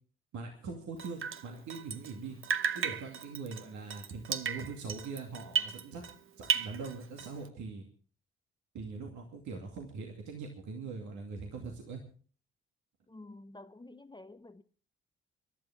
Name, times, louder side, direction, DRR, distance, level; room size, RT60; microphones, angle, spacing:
voice 1, 0.3-2.4 2.7-6.0 6.4-7.9 8.7-12.0, right 4 dB, 70° right, 2.5 m, -42 dB
Drip, 1.0-2.2 2.4-6.2 6.4-7.5, right 7 dB, 45° right, 0.9 m, -35 dB
voice 2, 13.1-14.6, left 2 dB, 15° left, 0.9 m, -50 dB
23.0 x 12.0 x 3.7 m
hypercardioid pair, 45°, 30 cm